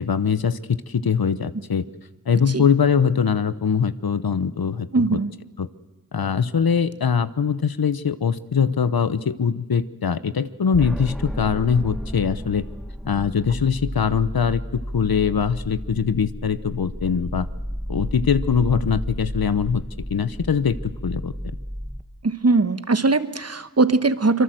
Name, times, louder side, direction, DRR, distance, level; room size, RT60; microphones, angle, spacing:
voice 1, 0.0-1.8 2.3-5.2 5.6-5.7 6.1-12.6 13.0-14.6 14.9-17.5 17.9-19.8 20.1-20.8 21.0-21.3, left 6 dB, 75° left, 15 dB, 0.9 m, -22 dB
voice 2, 4.9-5.3 22.2-24.4, right 3 dB, 40° right, 13 dB, 1.2 m, -20 dB
sound 1, 10.7-22.0, equal, ahead, 1.2 m, -32 dB
25.0 x 23.0 x 7.7 m, 1.1 s
wide cardioid pair, 50°, 37 cm